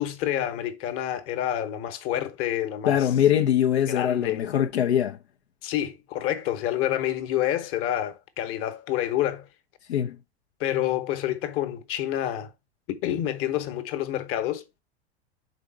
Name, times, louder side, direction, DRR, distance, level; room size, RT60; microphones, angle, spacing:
voice 1, 0.0-3.0 3.9-4.4 5.6-9.5 10.6-12.5 12.9-14.6, left 12 dB, 45° left, 1.1 m, -28 dB
voice 2, 2.8-5.2 9.9-10.2, left 10 dB, 85° left, 0.6 m, -22 dB
5.0 x 3.9 x 5.5 m
hypercardioid pair, 90°, 32 cm